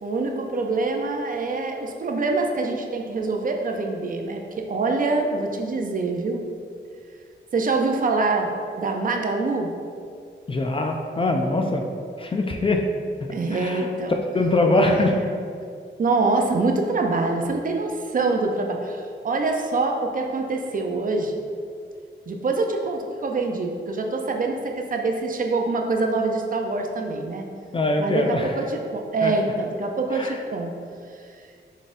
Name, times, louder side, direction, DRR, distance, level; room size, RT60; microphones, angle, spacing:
voice 1, 0.0-6.5 7.5-8.5 8.8-9.7 13.3-14.1 14.8-15.2 16.0-21.4 22.3-27.5 28.0-30.7 31.2-31.4, right 3 dB, 45° right, 3 dB, 0.5 m, -25 dB
voice 2, 10.5-11.8 12.2-12.8 13.5-13.9 14.3-15.1 27.7-28.5 29.2-29.3 30.1-30.3, left 2 dB, 25° left, 3 dB, 0.3 m, -22 dB
5.0 x 4.1 x 2.5 m, 2.2 s
wide cardioid pair, 115°, 20 cm